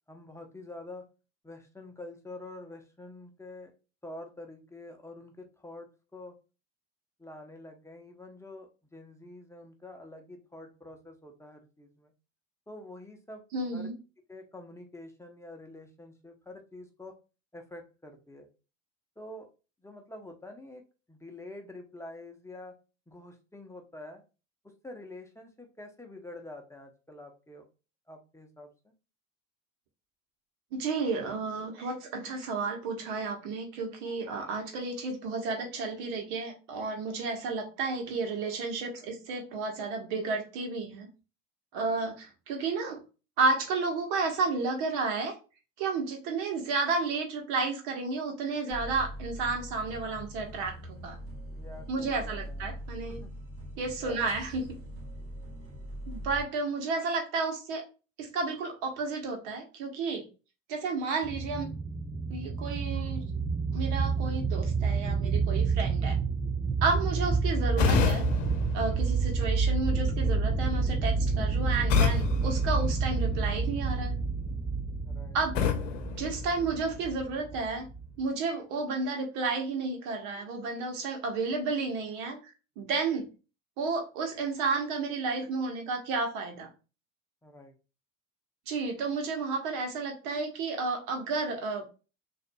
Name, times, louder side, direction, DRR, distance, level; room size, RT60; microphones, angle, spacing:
voice 1, 0.1-1.0 1.4-3.7 4.0-6.3 7.2-12.1 12.7-13.4 13.7-13.9 14.3-17.1 17.5-18.5 19.2-19.5 19.8-20.8 21.1-22.8 23.1-24.2 24.8-27.7 28.1-28.9 51.5-52.7 53.1-53.3 54.0-54.3 67.1-67.2 75.0-75.4 87.4-87.7, left 2 dB, 5° left, 3 dB, 0.9 m, -47 dB
voice 2, 13.5-13.9 30.7-41.1 41.7-43.0 43.4-45.3 45.8-51.2 51.9-53.2 53.8-54.6 56.1-57.8 58.2-60.2 60.7-61.7 62.3-63.2 63.7-66.2 66.8-68.2 68.7-74.1 75.3-75.5 76.2-77.9 78.2-83.2 83.8-86.7 88.7-91.8, right 4 dB, 60° right, 3 dB, 1.2 m, -32 dB
sound 1, 48.7-56.4, equal, 35° right, 2.1 m, -42 dB
sound 2, 61.2-78.3, right 4 dB, 10° right, 0.4 m, -29 dB
sound 3, 67.8-69.7 71.9-73.6 75.5-77.2, left 8 dB, 70° left, 0.9 m, -30 dB
6.3 x 2.7 x 2.3 m, 0.32 s
hypercardioid pair, 70°, 39 cm